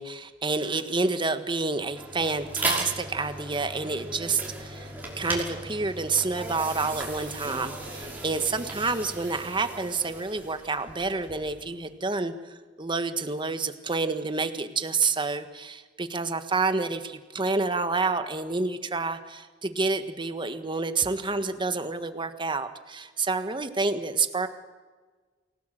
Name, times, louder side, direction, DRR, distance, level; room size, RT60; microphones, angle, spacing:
voice 1, 0.0-4.9 5.2-12.3 12.8-24.5, right 3 dB, 25° right, 9 dB, 1.5 m, -28 dB
sound 1, 1.7-11.6, right 2 dB, 10° right, 5.7 m, -36 dB
28.5 x 17.5 x 7.8 m, 1.4 s
head